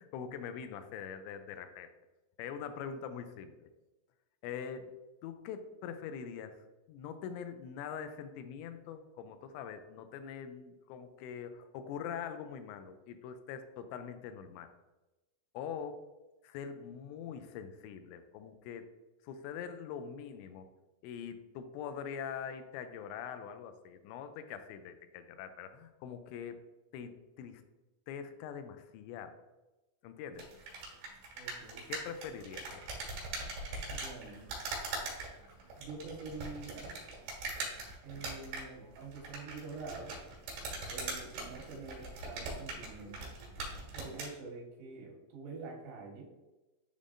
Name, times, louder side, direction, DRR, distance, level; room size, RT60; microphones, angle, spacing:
voice 1, 0.0-1.9 2.4-3.7 4.4-4.9 5.2-14.7 15.5-16.0 16.4-18.9 19.2-20.7 21.0-26.6 26.9-27.6 28.1-29.4 30.0-30.5 31.9-32.8, left 7 dB, 85° left, 9 dB, 2.8 m, -43 dB
sound 1, 30.3-44.3, right 3 dB, 70° right, 3.7 m, -42 dB
voice 2, 31.4-31.9 33.9-34.6 35.8-37.0 38.0-40.1 40.9-43.4 43.9-46.3, right 3 dB, 85° right, -1 dB, 3.6 m, -46 dB
10.5 x 3.6 x 2.5 m, 1.1 s
omnidirectional pair, 5.1 m